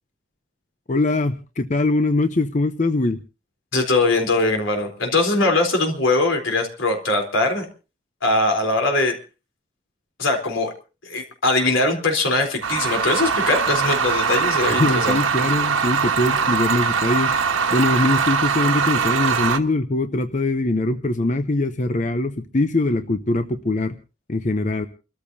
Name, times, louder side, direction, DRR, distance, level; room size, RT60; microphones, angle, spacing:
voice 1, 0.9-3.2 14.8-17.3 17.7-24.0 24.3-24.9, left 2 dB, 35° left, 9 dB, 0.6 m, -22 dB
voice 2, 3.7-7.7 8.2-9.1 10.2-10.7 11.0-15.2, left 2 dB, 80° left, 3 dB, 3.8 m, -21 dB
sound 1, 12.6-19.6, right 6 dB, 90° right, 1.4 m, -21 dB
29.0 x 13.5 x 2.7 m, 0.33 s
head